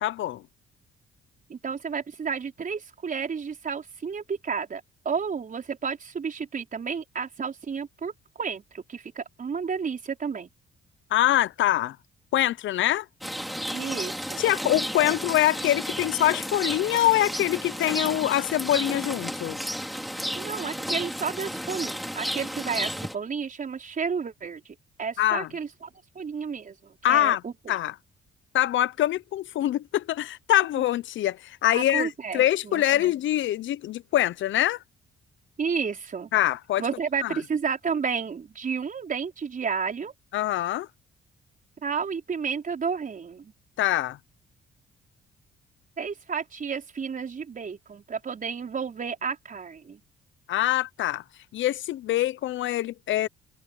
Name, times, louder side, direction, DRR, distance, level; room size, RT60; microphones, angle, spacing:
voice 1, 0.0-0.4 11.1-12.0 12.3-13.1 14.4-19.6 25.2-25.5 27.0-27.4 27.7-27.9 28.5-34.8 36.3-36.8 37.2-37.4 40.3-40.9 43.8-44.2 50.5-51.2 51.5-53.3, left 13 dB, 75° left, 0.8 m, -24 dB
voice 2, 1.5-10.5 13.7-14.4 14.9-15.1 20.1-25.9 26.1-27.8 31.7-33.1 35.6-36.3 36.8-40.1 41.8-43.5 46.0-50.0, right 6 dB, 40° right, 5.0 m, -32 dB
Rain, 13.2-23.1, equal, ahead, 4.4 m, -33 dB
open air
cardioid pair, 90°, 20 cm